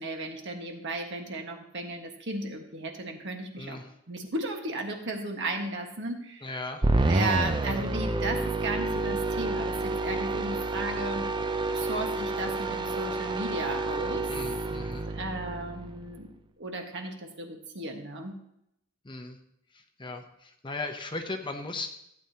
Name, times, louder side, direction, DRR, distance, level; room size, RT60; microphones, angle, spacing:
voice 1, 0.0-6.5 7.0-11.3 11.7-14.3 15.1-16.3 16.6-18.4, right 2 dB, 55° right, 3 dB, 1.5 m, -35 dB
voice 2, 6.4-6.9 14.3-15.1 19.0-19.4 20.0-21.9, left 2 dB, 20° left, 5 dB, 0.8 m, -37 dB
sound 1, 6.8-16.2, right 2 dB, 20° right, 0.5 m, -29 dB
15.5 x 8.9 x 2.9 m, 0.79 s
head